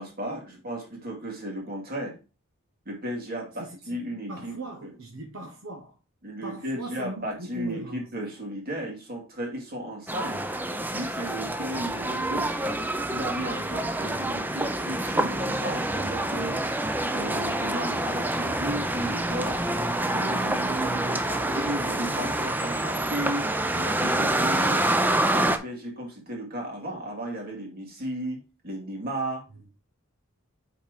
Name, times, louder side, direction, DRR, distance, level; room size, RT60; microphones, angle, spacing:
voice 1, 0.0-2.2 2.9-4.5 4.8-4.9 6.2-10.4 10.9-12.6 13.1-16.6 17.1-19.6 20.1-24.9 25.3-29.4, right 1 dB, 45° right, 2.4 m, -35 dB
voice 2, 3.6-6.0 6.4-8.1 14.0-14.2 20.4-22.5, right 2 dB, 75° right, 1.1 m, -39 dB
sound 1, 10.1-25.6, right 1 dB, 10° right, 0.5 m, -27 dB
5.7 x 4.4 x 5.0 m
head